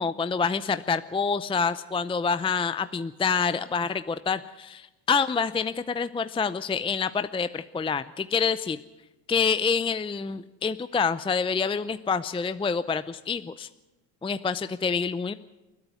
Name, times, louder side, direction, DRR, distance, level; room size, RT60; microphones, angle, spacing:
voice 1, 0.0-8.8 9.3-13.7 14.2-15.3, left 5 dB, 10° left, 13 dB, 0.6 m, -27 dB
28.5 x 9.7 x 9.5 m, 1.0 s
hypercardioid pair, 80°, 48 cm